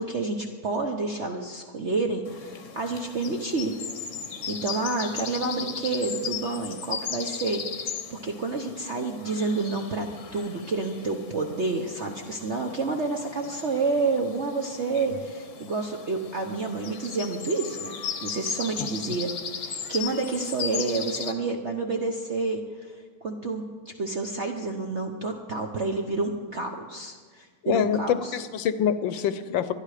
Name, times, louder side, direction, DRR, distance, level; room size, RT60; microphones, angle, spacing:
voice 1, 0.0-3.8 4.5-17.9 18.2-19.3 19.6-22.9 23.2-23.6 24.0-28.4, right 3 dB, 50° right, 3 dB, 0.8 m, -29 dB
sound 1, 2.3-21.3, left 6 dB, 45° left, 1.1 m, -37 dB
voice 2, 27.6-29.7, left 8 dB, 70° left, 12 dB, 1.3 m, -26 dB
19.5 x 12.0 x 4.9 m, 1.5 s
omnidirectional pair, 2.3 m